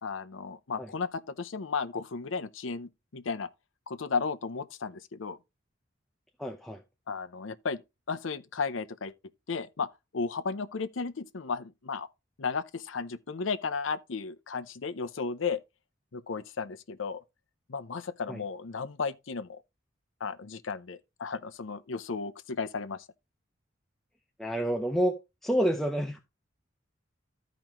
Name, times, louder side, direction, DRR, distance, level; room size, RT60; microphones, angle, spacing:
voice 1, 0.0-3.5 3.9-5.4 7.1-7.8 8.1-9.1 9.5-9.9 10.1-12.1 12.4-15.6 16.1-17.2 17.7-19.6 20.2-23.0, left 5 dB, 85° left, 0.7 m, -34 dB
voice 2, 6.4-6.8 18.3-18.4 24.4-25.1 25.4-26.2, equal, ahead, 0.7 m, -28 dB
14.0 x 5.1 x 3.0 m
head